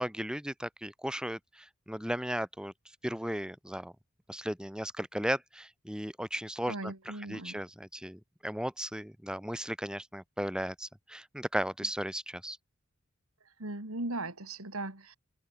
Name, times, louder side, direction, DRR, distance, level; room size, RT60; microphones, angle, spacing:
voice 1, 0.0-2.7 3.0-3.9 4.3-6.9 7.3-12.6, equal, 5° right, 4.1 m, -36 dB
voice 2, 6.7-7.6 13.4-15.2, right 2 dB, 85° right, 4.3 m, -38 dB
open air
head